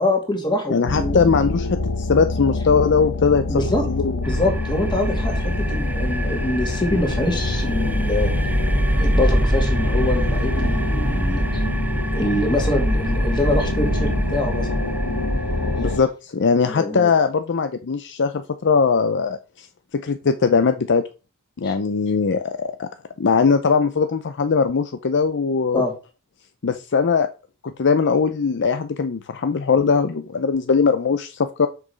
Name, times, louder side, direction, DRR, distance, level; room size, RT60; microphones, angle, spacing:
voice 1, 0.0-1.2 3.5-3.8 4.2-8.3 9.0-11.4 12.1-14.7 16.7-17.1 21.6-21.7 25.7-25.9, left 1 dB, 20° left, 2 dB, 2.5 m, -24 dB
voice 2, 0.7-3.6 3.9-4.2 15.8-19.7 19.9-21.0 21.6-22.9 23.2-25.8 26.6-27.3 27.6-31.7, left 5 dB, 55° left, 9 dB, 0.6 m, -20 dB
sound 1, 0.9-16.0, left 3 dB, 90° left, 1.2 m, -26 dB
sound 2, 4.2-16.0, right 1 dB, 5° right, 0.5 m, -24 dB
6.8 x 6.1 x 5.0 m, 0.32 s
head